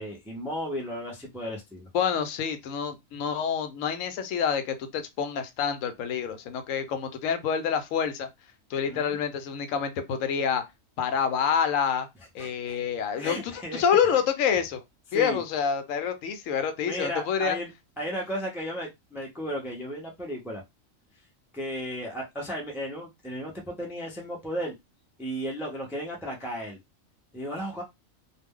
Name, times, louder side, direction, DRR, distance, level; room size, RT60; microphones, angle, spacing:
voice 1, 0.0-1.9 8.9-9.2 12.4-12.8 13.2-13.9 15.1-15.4 16.9-17.7 18.0-20.6 21.5-24.7 25.2-26.8 27.3-27.8, equal, 5° right, 0.4 m, -34 dB
voice 2, 1.9-8.3 8.7-10.6 11.0-12.1 12.3-14.8 15.1-17.6, left 7 dB, 75° left, 1.0 m, -27 dB
2.4 x 2.1 x 3.6 m
omnidirectional pair, 1.4 m